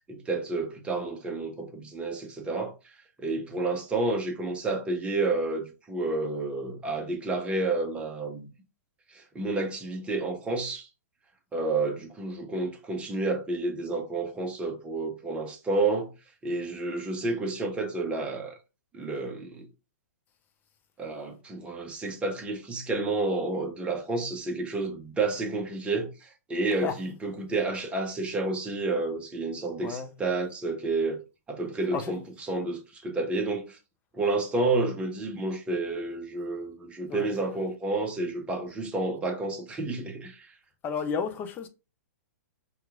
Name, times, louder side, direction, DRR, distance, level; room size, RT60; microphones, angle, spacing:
voice 1, 0.1-2.9 3.2-8.5 9.1-10.9 11.5-16.1 16.4-18.6 18.9-19.7 21.0-31.2 31.5-32.2 32.5-33.8 34.1-40.5, right 3 dB, 15° right, 0.8 m, -30 dB
voice 2, 40.8-41.7, left 6 dB, 25° left, 0.5 m, -32 dB
2.9 x 2.4 x 3.5 m
figure-of-eight pair, 115°, 8 cm